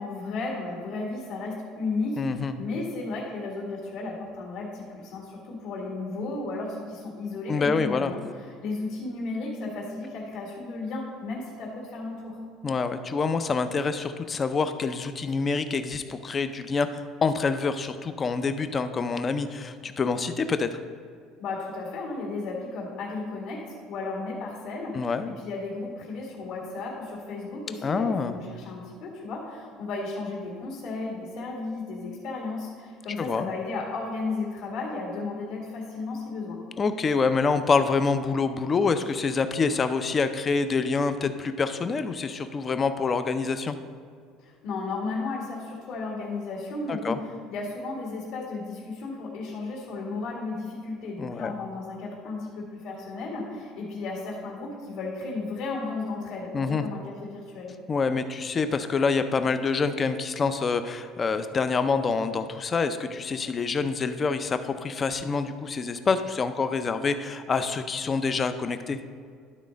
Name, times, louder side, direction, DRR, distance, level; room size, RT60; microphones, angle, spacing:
voice 1, 0.0-8.2 8.6-12.4 21.4-36.6 44.4-57.7, left 3 dB, 60° left, -3 dB, 1.9 m, -34 dB
voice 2, 2.2-2.5 7.5-8.1 12.6-20.8 24.9-25.3 27.8-28.4 33.2-33.5 36.8-43.8 46.9-47.2 51.2-51.5 56.5-56.8 57.9-69.0, left 4 dB, 20° left, 10 dB, 0.4 m, -26 dB
12.0 x 4.1 x 5.1 m, 2.1 s
cardioid pair, 165°, 0 cm